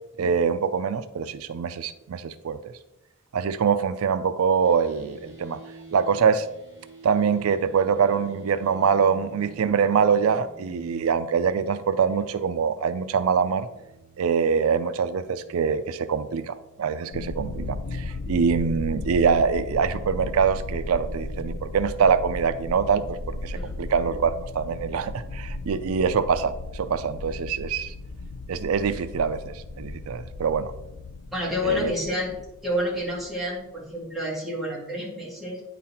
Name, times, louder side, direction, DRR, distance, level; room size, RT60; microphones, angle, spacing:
voice 1, 0.2-2.7 3.3-5.6 5.9-6.5 7.0-13.7 14.2-23.2 23.4-27.9 28.5-30.7 31.6-31.9, right 6 dB, 85° right, 12 dB, 0.4 m, -24 dB
sound 1, 4.6-19.7, right 2 dB, 15° right, 2.5 m, -50 dB
sound 2, 17.1-33.6, left 2 dB, 70° left, 0.5 m, -36 dB
voice 2, 31.3-32.3 32.6-35.6, left 1 dB, ahead, -5 dB, 2.2 m, -29 dB
9.3 x 4.0 x 4.3 m, 0.90 s
head